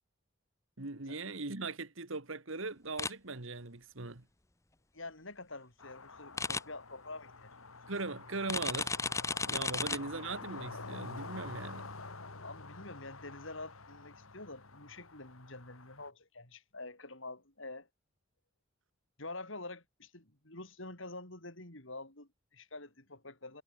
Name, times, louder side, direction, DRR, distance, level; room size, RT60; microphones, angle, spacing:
voice 1, 0.8-4.2 7.9-9.0 9.5-11.9, right 3 dB, 65° right, 1.8 m, -40 dB
sound 1, 3.0-3.1 6.4-6.6 8.5-10.0, left 4 dB, 15° left, 1.0 m, -33 dB
voice 2, 4.9-7.7 9.7-10.1 12.4-17.9 19.2-23.6, left 2 dB, 65° left, 5.4 m, -47 dB
sound 2, 5.8-16.1, left 3 dB, 80° left, 3.3 m, -48 dB
head